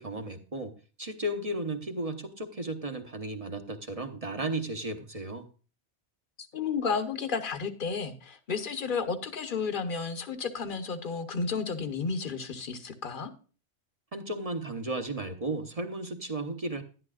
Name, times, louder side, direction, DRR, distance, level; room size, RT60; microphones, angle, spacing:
voice 1, 0.0-5.5 14.1-16.8, right 1 dB, 35° right, 6 dB, 0.9 m, -34 dB
voice 2, 6.5-13.3, left 5 dB, 50° left, 10 dB, 1.1 m, -32 dB
11.0 x 11.0 x 2.4 m, 0.37 s
omnidirectional pair, 1.1 m